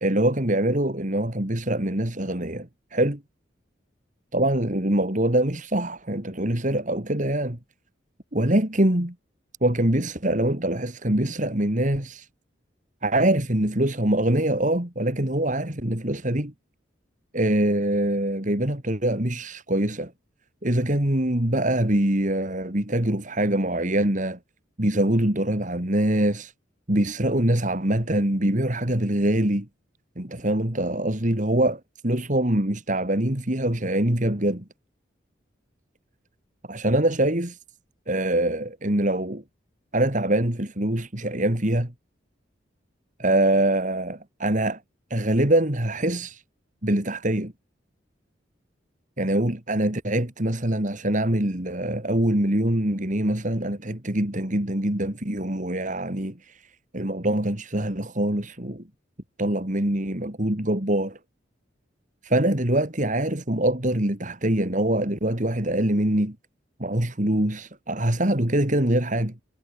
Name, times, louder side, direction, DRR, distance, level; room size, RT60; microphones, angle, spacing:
voice 1, 0.0-3.2 4.3-7.6 8.3-9.1 9.6-12.3 13.0-16.5 17.3-20.1 20.6-24.4 24.8-26.5 26.9-29.7 30.2-34.6 36.7-37.6 38.1-39.4 39.9-41.9 43.2-44.8 45.1-46.4 46.8-47.5 49.2-56.6 56.9-58.8 59.4-61.2 62.2-66.4 66.8-69.3, right 1 dB, 40° right, 2.9 m, -24 dB
head